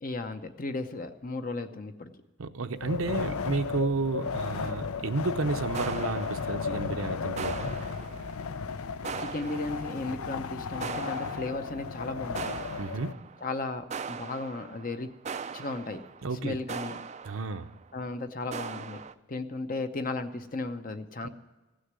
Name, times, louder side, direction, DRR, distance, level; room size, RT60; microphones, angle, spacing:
voice 1, 0.0-2.1 9.0-12.6 13.4-15.1 15.5-16.0 16.3-17.0 17.9-19.0 19.3-21.3, left 2 dB, 40° left, 9 dB, 0.7 m, -35 dB
voice 2, 2.4-7.7 12.8-13.2 16.2-16.6 17.2-17.7 21.2-21.3, right 3 dB, 70° right, 9 dB, 0.7 m, -31 dB
Wind, 2.8-13.1, left 5 dB, 75° left, 0.5 m, -34 dB
sound 1, 5.7-7.0 7.4-8.6 9.0-10.2 10.8-12.0 12.3-13.5 13.9-17.9 18.5-19.1, right 6 dB, 30° right, 0.4 m, -40 dB
16.0 x 6.4 x 9.6 m, 1.1 s
head